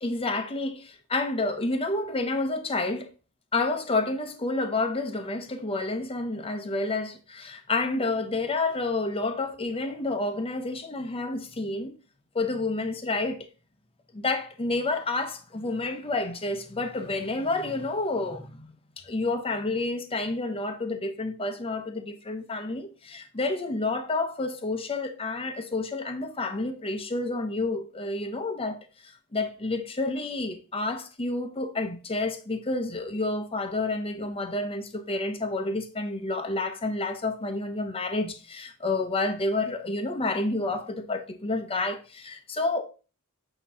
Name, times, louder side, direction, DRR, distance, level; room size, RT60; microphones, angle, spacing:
voice 1, 0.0-3.1 3.5-11.9 12.3-13.5 14.1-28.8 29.0-42.8, left 2 dB, 25° left, 0.8 m, -29 dB
8.4 x 3.0 x 5.5 m
head